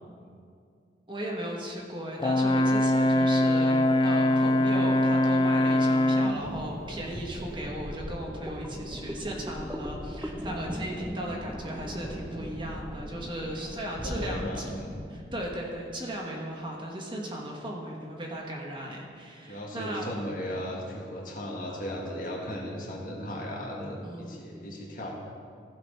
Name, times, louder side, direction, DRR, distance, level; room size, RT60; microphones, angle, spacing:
voice 1, 1.1-14.8 15.1-20.1 24.0-24.4, right 1 dB, 25° right, -1 dB, 1.2 m, -36 dB
Brass instrument, 2.2-6.4, left 1 dB, 25° left, 0.3 m, -23 dB
sound 1, 6.2-15.7, equal, 5° right, 0.8 m, -38 dB
voice 2, 14.0-15.0 19.4-25.1, equal, 45° left, -2 dB, 1.8 m, -36 dB
15.5 x 5.3 x 5.5 m, 2.3 s
head